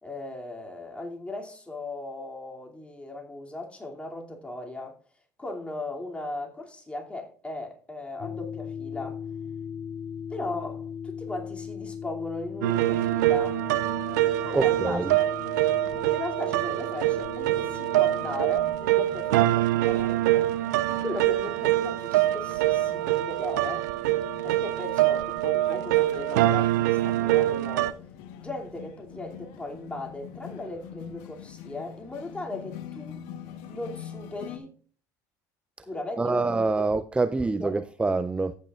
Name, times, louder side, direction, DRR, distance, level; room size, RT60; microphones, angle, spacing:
voice 1, 0.0-5.0 5.4-9.2 10.3-13.6 14.4-15.3 15.9-20.5 20.9-23.9 24.4-28.0 28.4-33.2 33.7-34.7 35.9-36.4 36.8-36.9 37.2-37.7, left 2 dB, 10° left, 2.6 m, -37 dB
sound 1, 8.2-18.5, left 7 dB, 40° left, 0.5 m, -39 dB
sound 2, 12.6-27.9, right 15 dB, 80° right, 0.5 m, -24 dB
voice 2, 14.5-15.1 36.2-38.5, right 3 dB, 10° right, 0.4 m, -26 dB
sound 3, 17.4-34.6, left 9 dB, 70° left, 1.2 m, -45 dB
14.5 x 8.3 x 2.4 m
hypercardioid pair, 75°, 9 cm